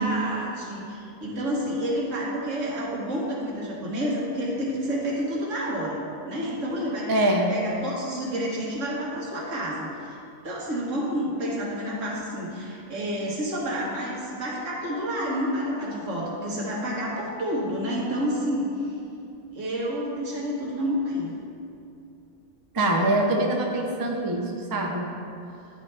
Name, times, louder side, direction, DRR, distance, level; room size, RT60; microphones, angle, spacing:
voice 1, 0.0-7.1 7.5-10.2 10.4-18.7 19.5-21.3, equal, 65° right, -4 dB, 1.6 m, -29 dB
voice 2, 7.1-7.5 22.7-25.1, right 1 dB, 35° right, 0 dB, 0.3 m, -24 dB
10.0 x 4.3 x 3.3 m, 2.7 s
omnidirectional pair, 1.4 m